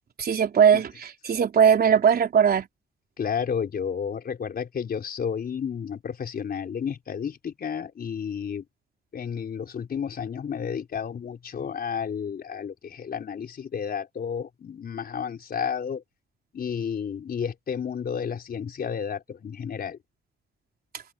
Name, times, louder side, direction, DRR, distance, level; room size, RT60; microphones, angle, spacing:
voice 1, 0.2-2.7, right 7 dB, 50° right, 3.8 m, -20 dB
voice 2, 3.2-8.6 9.1-16.0 16.5-20.0, left 7 dB, 50° left, 4.4 m, -31 dB
open air
cardioid pair, 90°, 20 cm